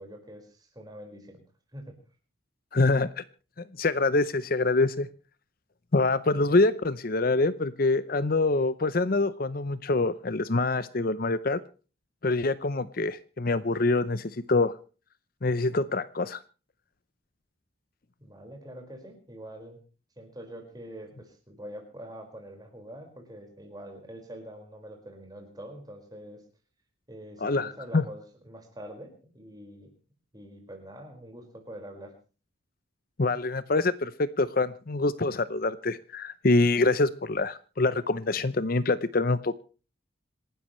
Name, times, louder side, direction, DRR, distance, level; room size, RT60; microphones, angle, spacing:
voice 1, 0.0-1.4 1.7-1.9 18.2-19.8 20.2-26.4 27.1-29.9 30.3-32.2, right 1 dB, 20° right, 3 dB, 5.0 m, -45 dB
voice 2, 2.7-3.2 3.8-5.1 5.9-11.6 12.2-14.7 15.4-16.4 27.4-28.0 33.2-39.6, left 3 dB, 45° left, 16 dB, 0.7 m, -25 dB
27.0 x 12.5 x 3.1 m, 0.36 s
head